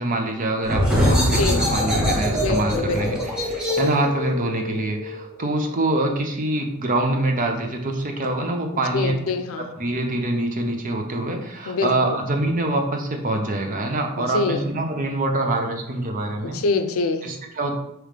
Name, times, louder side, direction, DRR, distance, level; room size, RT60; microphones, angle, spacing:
voice 1, 0.0-9.1 9.6-16.6 17.2-17.7, right 2 dB, 40° right, 3 dB, 0.7 m, -25 dB
sound 1, 0.6-6.0, equal, 5° right, 1.0 m, -23 dB
voice 2, 2.3-3.2 8.9-9.7 11.7-11.9 14.3-14.6 16.4-17.2, left 4 dB, 80° left, 8 dB, 0.5 m, -24 dB
5.0 x 3.1 x 3.3 m, 0.81 s
head